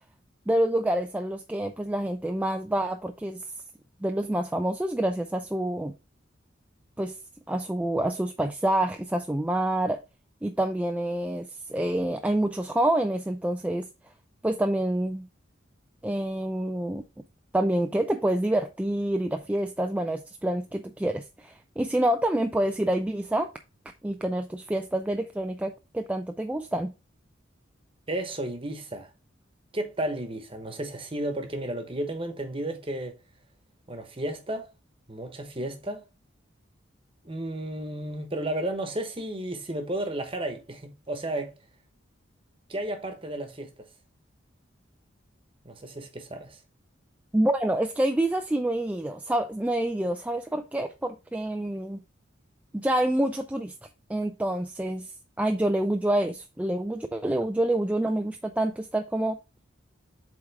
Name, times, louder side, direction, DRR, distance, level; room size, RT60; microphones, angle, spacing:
voice 1, 0.5-3.4 4.0-5.9 7.0-7.2 7.5-10.0 10.4-13.9 14.4-15.3 16.0-17.0 17.5-23.5 24.0-26.9 47.3-52.0 52.7-53.7 54.1-55.1 55.4-59.4, right 1 dB, 5° right, 0.3 m, -27 dB
voice 2, 28.1-29.1 29.7-33.2 33.9-34.7 35.1-36.0 37.2-41.5 42.7-43.9 45.6-46.6, right 1 dB, 25° right, 1.1 m, -33 dB
7.9 x 3.5 x 3.5 m
head